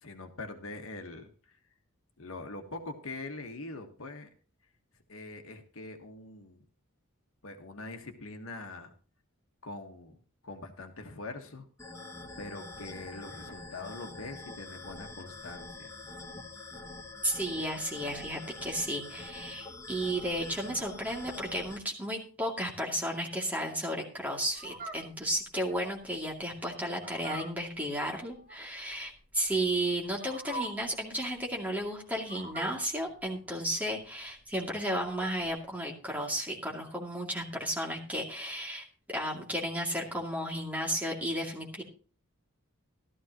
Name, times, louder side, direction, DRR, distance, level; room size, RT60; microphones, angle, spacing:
voice 1, 0.0-1.6 2.2-4.3 5.1-6.6 7.4-8.9 9.6-10.1 10.4-11.7 12.4-15.9, left 2 dB, 70° left, 5 dB, 1.4 m, -43 dB
sound 1, 11.8-21.8, left 2 dB, 15° left, 1.1 m, -45 dB
voice 2, 17.2-41.8, equal, 5° right, -1 dB, 2.4 m, -33 dB
Fowl, 24.5-35.6, right 2 dB, 40° right, 2.2 m, -45 dB
15.0 x 13.0 x 3.0 m, 0.38 s
head